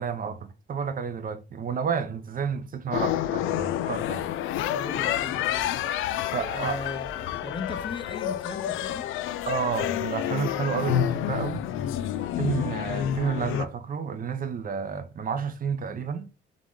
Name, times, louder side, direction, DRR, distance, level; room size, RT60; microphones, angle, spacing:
voice 1, 0.0-4.3 6.3-6.8 9.5-11.6 12.4-16.3, right 6 dB, 45° right, 0.7 m, -30 dB
sound 1, 2.9-13.7, left 11 dB, 85° left, 0.4 m, -29 dB
voice 2, 4.7-5.8 6.1-9.1, left 3 dB, 25° left, 0.6 m, -38 dB
3.7 x 3.6 x 3.7 m
cardioid pair, 90°, 20 cm